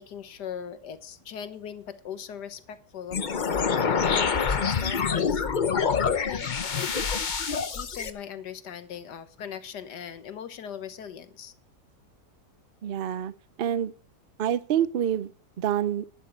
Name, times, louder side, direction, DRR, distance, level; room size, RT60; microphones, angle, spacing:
voice 1, 0.0-3.2 3.8-5.4 6.0-7.3 7.7-11.5, left 8 dB, 75° left, 12 dB, 1.7 m, -39 dB
sound 1, 3.1-8.1, left 6 dB, 40° left, 0.7 m, -26 dB
voice 2, 12.8-13.3 13.6-13.9 14.4-15.3 15.6-16.0, right 10 dB, 85° right, 17 dB, 0.5 m, -26 dB
11.0 x 11.0 x 4.5 m, 0.43 s
omnidirectional pair, 1.8 m